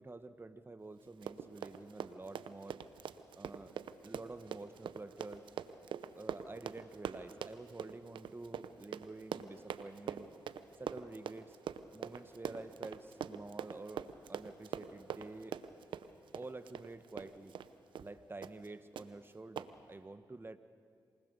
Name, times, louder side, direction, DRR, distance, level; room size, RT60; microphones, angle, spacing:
voice 1, 0.0-2.8 3.3-3.7 4.0-5.4 6.2-10.3 10.8-11.6 11.9-15.6 16.3-17.6 18.0-20.6, right 2 dB, 25° right, 10 dB, 1.2 m, -49 dB
Run, 1.1-17.7 18.0-18.1 18.4-18.7 19.0-19.1 19.6-19.7, right 8 dB, 80° right, 0.8 m, -43 dB
27.5 x 19.5 x 6.8 m, 2.2 s
supercardioid pair, 45°, 8 cm